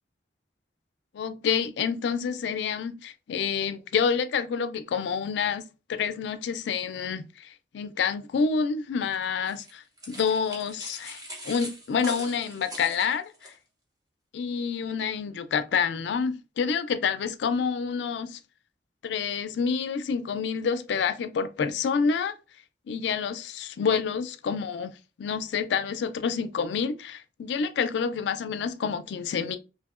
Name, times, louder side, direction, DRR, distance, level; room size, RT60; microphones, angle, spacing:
voice 1, 1.1-13.5 14.3-18.4 19.0-22.3 22.9-29.6, left 6 dB, 70° left, 0.3 m, -28 dB
sound 1, 9.5-13.5, equal, 20° right, 0.8 m, -42 dB
2.7 x 2.7 x 2.4 m
head